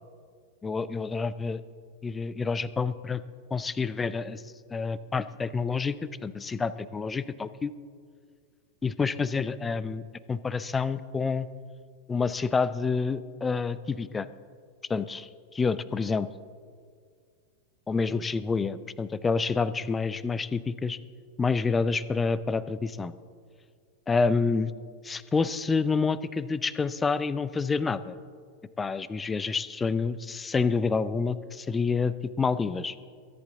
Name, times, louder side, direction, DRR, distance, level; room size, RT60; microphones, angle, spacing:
voice 1, 0.6-1.6 2.0-3.2 3.5-4.4 4.7-6.0 6.2-7.7 8.8-10.0 10.3-11.5 12.1-14.3 14.9-16.3 17.9-21.0 21.4-23.1 24.1-24.7 25.0-28.2 28.8-32.9, left 4 dB, 15° left, 16 dB, 0.5 m, -28 dB
22.5 x 10.5 x 3.7 m, 2.1 s
figure-of-eight pair, 90°, 0 cm